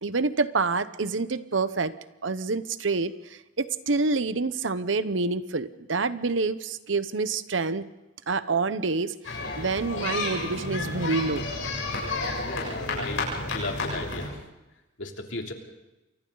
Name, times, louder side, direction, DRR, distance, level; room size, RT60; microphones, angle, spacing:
voice 1, 0.0-1.9 2.2-7.9 8.3-11.5, right 3 dB, 75° right, 14 dB, 0.9 m, -27 dB
sound 1, 9.2-14.3, left 2 dB, 90° left, 7.5 m, -31 dB
voice 2, 12.5-14.4 15.0-15.5, left 2 dB, 70° left, 2 dB, 3.1 m, -35 dB
29.0 x 24.0 x 4.0 m, 1.0 s
head